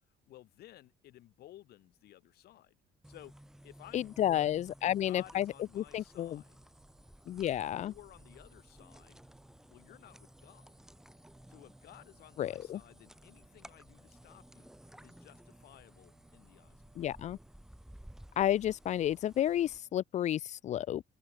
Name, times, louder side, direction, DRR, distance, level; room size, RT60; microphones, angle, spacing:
voice 1, 0.1-2.8 3.0-3.3 3.6-6.6 7.5-9.2 9.7-10.7 11.5-14.8 15.0-17.1, left 14 dB, 70° left, 2.6 m, -56 dB
Singing, 2.9-20.0, right 3 dB, 20° right, 7.8 m, -69 dB
sound 1, 3.0-19.8, equal, 5° right, 5.5 m, -56 dB
voice 2, 3.9-6.4 7.3-7.9 12.4-12.8 17.0-17.4 18.4-21.0, left 11 dB, 45° left, 0.4 m, -31 dB
open air
cardioid pair, 110°, 17 cm